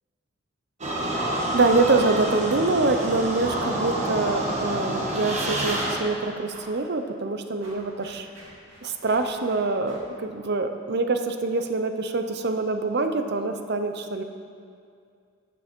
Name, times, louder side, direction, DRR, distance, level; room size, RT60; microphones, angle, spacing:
sound 1, 0.8-6.0, right 1 dB, 35° right, 1.7 m, -28 dB
sound 2, 1.0-1.3 1.6-1.7 2.1-2.4 3.0-3.3 4.0-4.4 4.8-4.9 5.2-5.8 6.5-6.8 7.2-10.1, equal, 90° right, 2.8 m, -48 dB
voice 1, 1.5-8.3 8.8-14.2, right 3 dB, 60° right, 7 dB, 0.8 m, -25 dB
14.0 x 9.2 x 4.5 m, 2.3 s
head